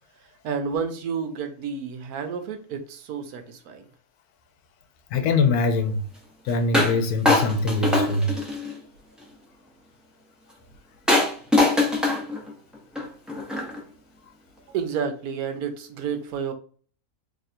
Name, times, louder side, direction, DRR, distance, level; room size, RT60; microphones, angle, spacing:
voice 1, 0.4-3.8 14.7-16.5, right 6 dB, 80° right, 1.2 m, -30 dB
voice 2, 5.1-6.0 6.4-8.3, left 3 dB, 85° left, 1.2 m, -23 dB
sound 1, 6.7-7.0 7.3-8.8 11.1-13.8, left 2 dB, ahead, 0.5 m, -22 dB
3.1 x 2.5 x 4.2 m
omnidirectional pair, 1.6 m